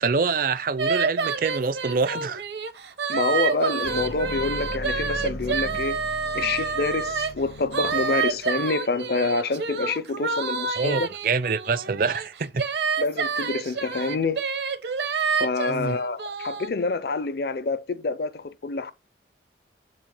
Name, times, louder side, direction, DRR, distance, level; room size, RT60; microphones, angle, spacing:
voice 1, 0.0-2.4 10.8-12.7 15.7-16.0, right 4 dB, 50° right, 0.5 m, -26 dB
sound 1, 0.8-7.3 7.7-16.7, right 5 dB, 70° right, 0.9 m, -28 dB
voice 2, 3.1-6.0 6.3-11.1 13.0-14.4 15.4-18.9, left 3 dB, 60° left, 0.6 m, -27 dB
sound 2, 3.8-8.7, left 1 dB, 80° left, 1.6 m, -38 dB
7.4 x 2.9 x 5.4 m
head